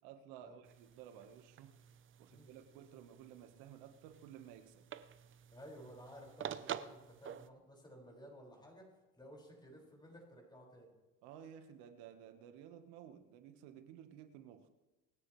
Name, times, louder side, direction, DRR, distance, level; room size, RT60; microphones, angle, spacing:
voice 1, 0.0-1.7 2.2-4.9 11.2-14.7, right 9 dB, 85° right, 8 dB, 1.4 m, -55 dB
sound 1, 0.6-7.5, right 9 dB, 40° right, 0.7 m, -49 dB
voice 2, 5.5-8.9 9.2-10.9, equal, 15° left, -1 dB, 5.5 m, -55 dB
26.0 x 9.7 x 3.2 m, 1.1 s
supercardioid pair, 100°, 31 cm